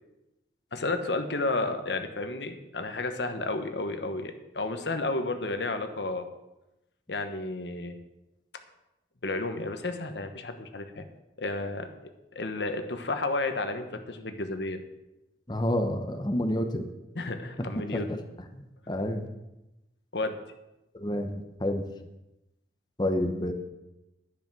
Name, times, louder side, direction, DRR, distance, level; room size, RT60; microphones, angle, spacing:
voice 1, 0.7-6.3 7.1-8.0 9.2-11.1 11.4-11.9 12.3-14.8 17.1-18.1 20.1-20.4, left 2 dB, 80° left, 7 dB, 1.2 m, -32 dB
voice 2, 15.5-16.9 17.9-18.2 18.6-19.3 20.9-21.8 23.0-23.5, left 1 dB, 25° left, 5 dB, 1.0 m, -29 dB
11.0 x 10.0 x 6.1 m, 0.95 s
head